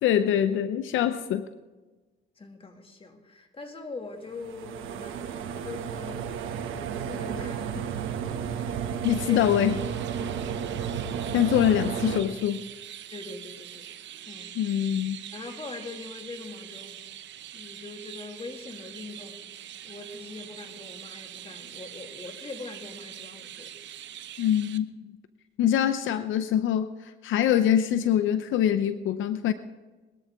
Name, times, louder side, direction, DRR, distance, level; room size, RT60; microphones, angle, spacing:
voice 1, 0.0-1.5 9.0-9.7 11.3-12.6 14.6-15.2 24.4-25.1 25.6-26.9 27.2-29.5, left 10 dB, 80° left, 11 dB, 0.7 m, -24 dB
voice 2, 2.4-6.3 6.7-8.0 8.7-8.8 9.2-9.4 10.2-10.9 13.1-14.6 15.3-17.0 17.5-19.4 19.8-23.7, left 3 dB, 30° left, 4 dB, 2.1 m, -42 dB
sound 1, 4.4-12.2, right 8 dB, 80° right, 1.2 m, -32 dB
Chirp tweet, 9.0-24.8, right 11 dB, 65° right, 0.8 m, -44 dB
21.5 x 13.0 x 3.5 m, 1.2 s
cardioid pair, 90°, 20 cm